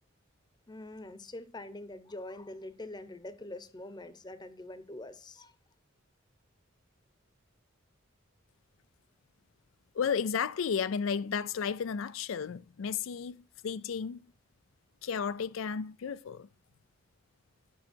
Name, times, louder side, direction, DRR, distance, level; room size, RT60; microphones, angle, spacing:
voice 1, 0.7-5.5, left 1 dB, 20° left, 0.8 m, -44 dB
voice 2, 9.9-14.2 15.0-16.5, left 6 dB, 85° left, 0.4 m, -33 dB
11.0 x 6.3 x 4.4 m
head